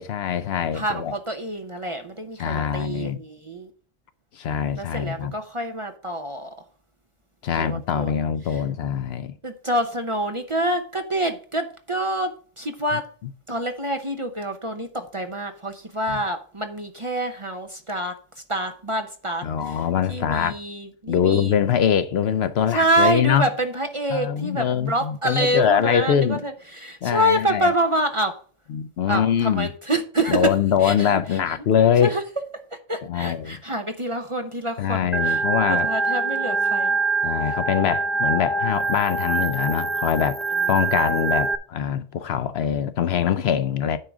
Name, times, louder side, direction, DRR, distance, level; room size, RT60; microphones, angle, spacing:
voice 1, 0.0-1.1 2.4-3.2 4.4-5.3 7.4-9.3 16.1-16.2 19.4-20.6 21.1-23.5 24.1-26.4 27.0-27.7 28.7-29.7 30.3-32.1 33.1-33.6 34.8-35.9 37.2-40.4 40.7-44.0, left 8 dB, 65° left, 0.8 m, -23 dB
voice 2, 0.7-3.7 4.8-6.5 7.6-8.1 8.4-8.6 9.4-13.1 13.5-18.2 18.5-21.6 22.7-28.4 29.1-30.5 30.8-31.4 32.0-32.2 32.7-37.0 40.6-40.7, right 1 dB, 30° right, 0.7 m, -27 dB
Organ, 35.1-41.6, right 3 dB, ahead, 0.3 m, -24 dB
9.6 x 3.7 x 6.0 m
omnidirectional pair, 1.2 m